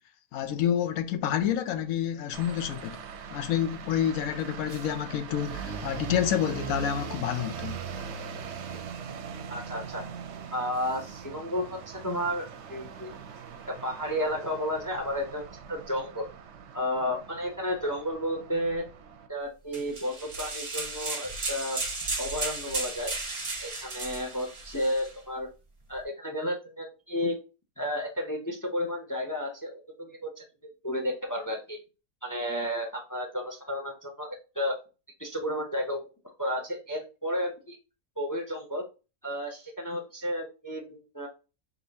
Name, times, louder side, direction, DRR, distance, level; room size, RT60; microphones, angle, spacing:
voice 1, 0.3-3.0 3.3-7.8, left 10 dB, 75° left, 1.0 m, -28 dB
sound 1, 2.3-19.3, right 6 dB, 60° right, 0.8 m, -41 dB
voice 2, 9.5-10.0 10.5-13.1 13.7-15.4 15.7-16.3 16.7-18.9 19.3-21.8 22.2-23.1 23.6-25.5 25.9-27.4 27.8-30.4 30.8-31.8 32.2-34.8 35.2-37.8 38.2-38.8 39.2-41.3, equal, 25° left, 0.5 m, -32 dB
sound 2, 19.7-25.1, right 3 dB, 30° right, 0.6 m, -34 dB
3.9 x 3.7 x 2.8 m
omnidirectional pair, 1.5 m